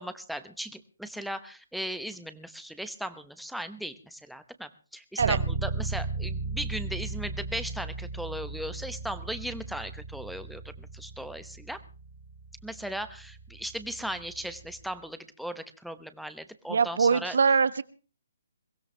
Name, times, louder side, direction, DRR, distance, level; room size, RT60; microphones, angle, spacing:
voice 1, 0.0-11.8 12.6-17.4, equal, ahead, 10 dB, 0.9 m, -37 dB
Bass guitar, 5.2-14.9, right 4 dB, 35° right, 2.0 m, -36 dB
voice 2, 16.7-17.8, right 5 dB, 70° right, 16 dB, 1.1 m, -23 dB
22.5 x 16.5 x 3.3 m, 0.36 s
hypercardioid pair, 155°, 0 cm